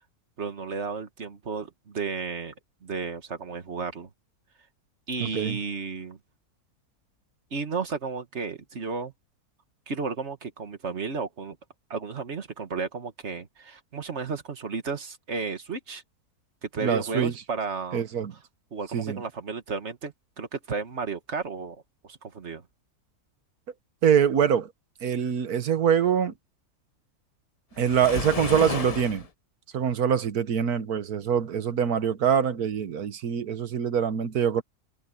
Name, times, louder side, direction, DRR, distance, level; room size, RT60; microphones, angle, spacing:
voice 1, 0.4-2.5 2.8-4.1 5.1-6.2 7.5-9.1 9.9-11.6 11.9-16.0 16.6-18.0 18.7-22.6, right 4 dB, 50° right, 1.8 m, -33 dB
voice 2, 5.2-5.6 16.8-17.3 17.9-18.3 18.9-19.2 24.0-24.7 25.0-26.3 27.8-29.3 29.7-34.6, right 8 dB, 80° right, 1.7 m, -24 dB
Waves surf, 27.8-29.3, left 4 dB, 30° left, 0.7 m, -32 dB
open air
omnidirectional pair, 1.6 m